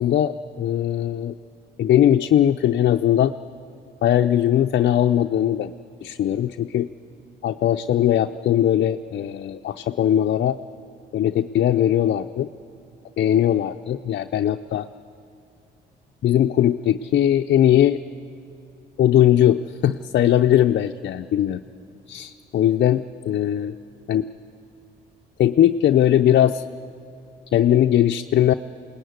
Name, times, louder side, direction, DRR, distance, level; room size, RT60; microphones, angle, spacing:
voice 1, 0.0-1.3 1.8-3.3 4.0-5.7 6.0-6.9 7.4-10.6 11.1-12.5 13.2-14.9 16.2-18.0 19.0-21.6 22.1-23.0 23.3-23.7 24.1-24.3 25.4-26.6 27.5-28.5, left 11 dB, 60° left, 6 dB, 0.6 m, -19 dB
22.0 x 19.0 x 9.4 m, 2.8 s
cardioid pair, 90°, 20 cm